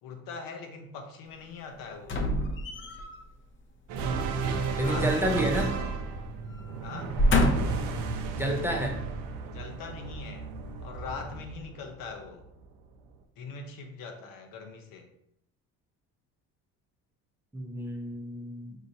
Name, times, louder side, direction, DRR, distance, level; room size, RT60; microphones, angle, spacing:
voice 1, 0.0-2.2 4.7-5.5 6.8-7.2 9.5-10.5 10.8-12.5 13.4-15.1, left 4 dB, 75° left, 4 dB, 0.8 m, -42 dB
sound 1, 2.0-3.2 4.7-5.9 6.2-6.4 7.0-7.9 8.6-8.7, left 1 dB, 35° left, 0.6 m, -27 dB
sound 2, 3.9-12.5, right 4 dB, 85° right, 0.6 m, -33 dB
voice 2, 4.7-5.7 8.3-9.0 17.5-18.8, equal, 5° right, 0 dB, 0.6 m, -30 dB
4.8 x 2.8 x 2.7 m, 0.76 s
cardioid pair, 125°, 34 cm